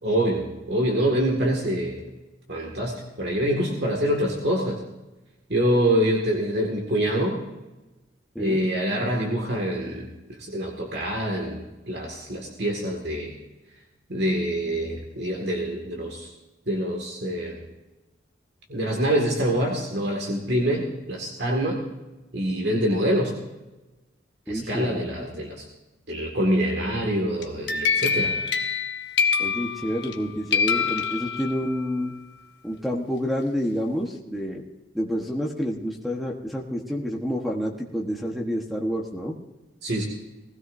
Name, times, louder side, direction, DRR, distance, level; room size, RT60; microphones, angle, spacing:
voice 1, 0.0-2.0 2.5-4.8 5.5-7.4 8.4-10.1 10.4-11.6 11.9-13.4 14.1-16.3 16.7-17.6 18.7-21.8 22.3-23.3 24.5-25.7 26.1-28.3 39.8-40.0, equal, 60° right, 0 dB, 2.1 m, -25 dB
voice 2, 24.5-25.3 29.4-32.1 32.6-34.7 34.9-39.3, equal, ahead, 0 dB, 1.2 m, -29 dB
sound 1, 27.4-30.2 30.5-31.8, left 6 dB, 65° left, 1.0 m, -25 dB
20.0 x 16.0 x 2.7 m, 1.1 s
head